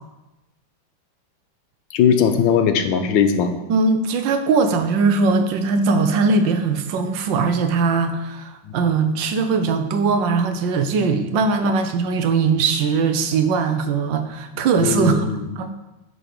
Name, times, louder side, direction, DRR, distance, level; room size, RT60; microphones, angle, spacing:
voice 1, 1.9-3.5 8.6-8.8 14.8-15.5, left 7 dB, 90° left, 8 dB, 1.5 m, -19 dB
voice 2, 3.7-15.3 15.6-15.9, right 4 dB, 75° right, 8 dB, 1.5 m, -20 dB
10.0 x 5.4 x 4.7 m, 1.0 s
omnidirectional pair, 2.1 m